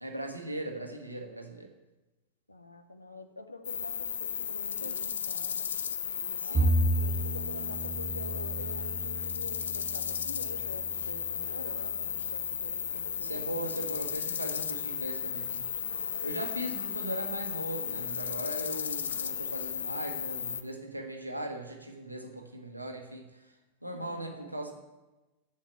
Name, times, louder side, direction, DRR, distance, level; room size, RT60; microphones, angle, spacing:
voice 1, 0.0-1.7 6.4-6.7 13.2-15.7 16.2-23.5 23.8-24.7, right 1 dB, 85° right, 4 dB, 1.4 m, -39 dB
voice 2, 2.5-5.7 6.4-14.1 15.8-16.6 23.9-24.6, left 2 dB, 85° left, 7 dB, 0.9 m, -46 dB
sound 1, 3.6-20.6, left 8 dB, 65° left, 0.5 m, -34 dB
Bowed string instrument, 6.5-12.9, right 1 dB, 25° right, 1.8 m, -33 dB
7.3 x 6.8 x 7.7 m, 1.1 s
figure-of-eight pair, 90°, 0 cm